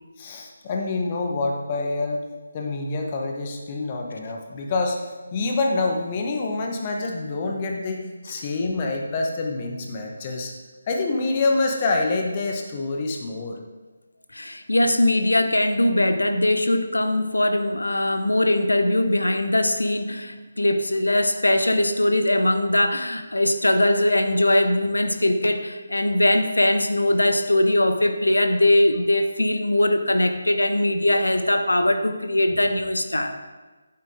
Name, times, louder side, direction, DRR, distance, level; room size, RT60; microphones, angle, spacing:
voice 1, 0.2-2.3 2.5-5.0 5.3-10.5 10.9-13.6 32.7-32.8, left 3 dB, 25° left, 1 dB, 1.0 m, -26 dB
voice 2, 14.3-33.3, left 1 dB, 70° left, 7 dB, 0.8 m, -21 dB
8.9 x 7.4 x 3.7 m, 1.3 s
figure-of-eight pair, 150°, 0 cm